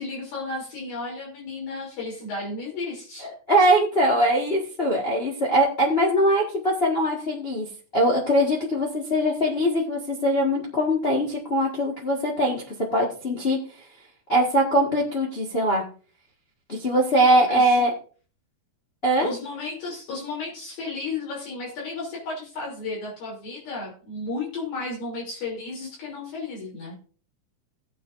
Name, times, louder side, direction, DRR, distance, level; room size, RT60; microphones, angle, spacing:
voice 1, 0.0-3.3 17.5-17.7 19.2-27.0, left 3 dB, 75° left, -4 dB, 4.9 m, -33 dB
voice 2, 3.5-7.7 7.9-13.6 14.3-15.8 16.7-17.9 19.0-19.3, right 1 dB, 50° left, -2 dB, 0.7 m, -22 dB
17.5 x 8.5 x 2.6 m, 0.40 s
omnidirectional pair, 4.2 m